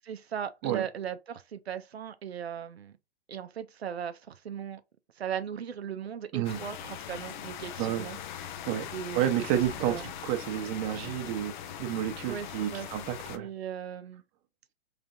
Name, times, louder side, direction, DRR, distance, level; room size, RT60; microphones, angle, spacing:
voice 1, 0.0-3.0 3.3-4.8 5.2-8.2 8.9-9.3 9.9-10.1 12.3-12.9 13.3-14.2, right 8 dB, 90° right, 0.6 m, -38 dB
sound 1, 6.4-13.4, left 9 dB, 50° left, 0.6 m, -41 dB
voice 2, 9.1-11.5 11.8-13.5, right 11 dB, 35° right, 0.9 m, -30 dB
3.6 x 3.3 x 2.5 m
hypercardioid pair, 120°, 31 cm